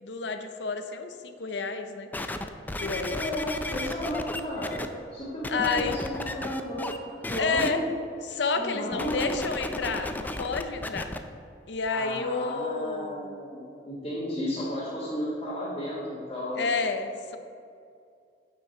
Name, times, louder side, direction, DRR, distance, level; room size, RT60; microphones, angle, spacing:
voice 1, 0.0-2.1 2.8-3.2 5.5-6.0 7.4-7.8 8.2-11.1 11.7-13.4 16.5-17.4, left 4 dB, 80° left, 7 dB, 0.6 m, -30 dB
sound 1, 2.1-4.9 5.4-7.0 7.2-7.7 8.9-11.2 11.9-12.0, left 1 dB, 10° left, 0.3 m, -34 dB
voice 2, 3.1-4.8 5.1-7.8 8.6-9.3 11.9-16.7, left 1 dB, 30° left, -10 dB, 1.9 m, -33 dB
9.1 x 6.1 x 4.4 m, 2.4 s
head